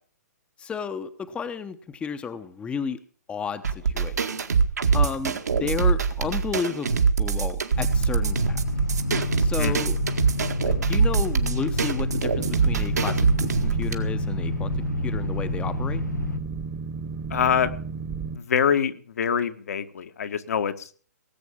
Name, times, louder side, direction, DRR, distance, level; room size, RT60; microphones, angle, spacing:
voice 1, 0.6-3.0 3.3-4.3 4.9-8.6 9.4-10.0 10.6-14.7 15.0-16.0, left 6 dB, 10° left, 11 dB, 0.9 m, -32 dB
sound 1, 3.6-13.9, right 5 dB, 70° right, 1.9 m, -24 dB
sound 2, 7.7-16.4, left 2 dB, 85° left, 1.2 m, -29 dB
Boat Water vehicle, 12.3-18.4, right 5 dB, 25° right, 1.3 m, -33 dB
voice 2, 17.3-17.7 18.3-21.0, left 7 dB, 60° left, 9 dB, 1.6 m, -25 dB
18.5 x 8.3 x 7.2 m, 0.43 s
figure-of-eight pair, 120°, 9 cm